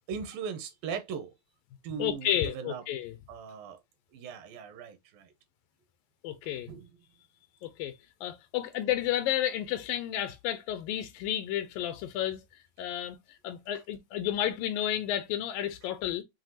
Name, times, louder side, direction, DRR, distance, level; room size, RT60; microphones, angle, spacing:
voice 1, 0.1-1.3 1.8-2.8 3.3-3.8 4.1-5.3 6.7-6.9, right 6 dB, 80° right, 2.3 m, -39 dB
voice 2, 2.0-3.2 6.2-6.7 7.6-7.9 8.2-12.4 12.8-13.2 13.4-16.2, left 11 dB, 80° left, 2.1 m, -31 dB
7.4 x 2.7 x 2.6 m
omnidirectional pair, 4.4 m